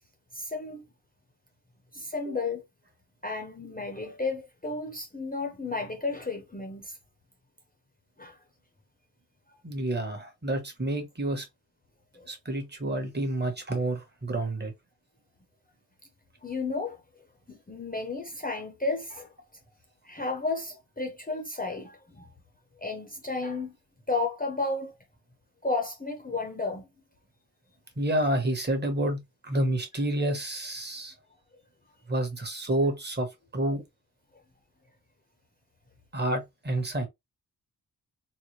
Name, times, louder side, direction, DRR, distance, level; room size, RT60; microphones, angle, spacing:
voice 1, 0.3-0.8 1.9-2.6 3.2-6.9 8.2-8.4 12.2-12.3 16.4-17.0 17.5-19.3 20.1-22.3 22.8-23.7 24.1-24.9 25.6-26.9, left 3 dB, 20° left, 0.7 m, -32 dB
voice 2, 9.6-11.4 12.3-14.7 28.0-31.1 32.1-33.3 33.5-33.8 36.1-37.1, right 1 dB, 25° right, 1.1 m, -29 dB
4.1 x 2.1 x 3.1 m
wide cardioid pair, 120°, 41 cm